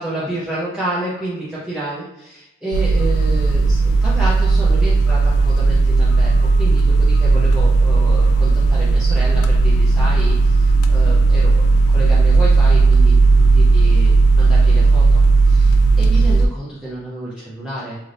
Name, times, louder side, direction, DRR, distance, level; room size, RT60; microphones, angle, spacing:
voice 1, 0.0-15.2 15.5-18.0, right 1 dB, ahead, -10 dB, 0.5 m, -29 dB
sound 1, 2.7-16.5, right 3 dB, 85° left, 0.3 m, -14 dB
3.2 x 2.7 x 2.5 m, 0.96 s
head